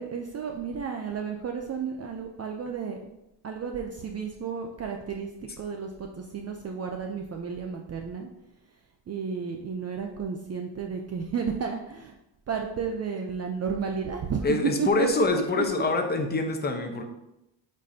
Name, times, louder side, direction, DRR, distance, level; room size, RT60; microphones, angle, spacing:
voice 1, 0.0-3.0 3.4-5.3 5.6-8.3 9.1-12.1 12.5-15.1 15.6-15.7, right 6 dB, 35° right, 3 dB, 0.5 m, -32 dB
voice 2, 14.4-17.0, left 3 dB, 20° left, 4 dB, 0.8 m, -25 dB
8.0 x 4.4 x 2.7 m, 0.88 s
cardioid pair, 125°, 46 cm